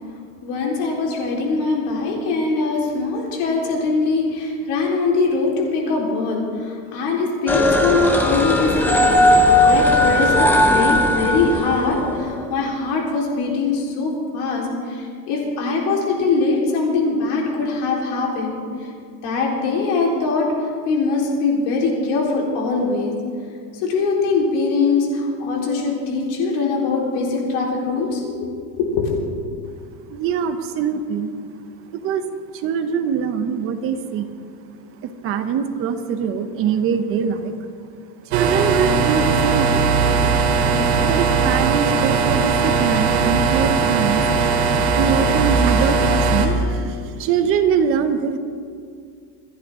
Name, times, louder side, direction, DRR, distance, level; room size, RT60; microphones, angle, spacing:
voice 1, 0.4-18.6 19.2-20.5 20.9-23.1 23.8-29.1, left 4 dB, 55° left, -2 dB, 4.0 m, -22 dB
sound 1, 7.5-12.3, left 1 dB, 5° left, 0.6 m, -17 dB
voice 2, 30.1-31.3 32.0-32.2 32.5-34.3 35.0-37.5 38.3-39.9 41.0-44.2 45.0-48.4, right 7 dB, 30° right, 9 dB, 0.7 m, -22 dB
sound 2, 38.3-46.5, right 4 dB, 70° right, 2.6 m, -19 dB
27.5 x 11.0 x 3.7 m, 2.3 s
supercardioid pair, 165°, 45 cm